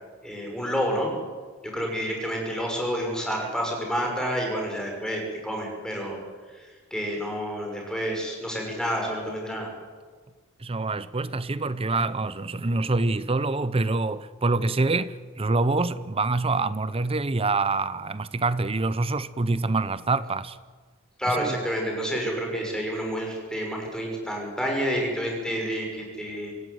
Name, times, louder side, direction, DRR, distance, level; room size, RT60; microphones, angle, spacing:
voice 1, 0.2-1.1 1.7-6.2 6.5-6.6 6.9-9.7 21.2-26.5, equal, 5° left, 6.1 m, -29 dB
voice 2, 10.6-20.6 21.3-21.6, right 3 dB, 25° right, 0.7 m, -26 dB
26.0 x 16.5 x 9.6 m
head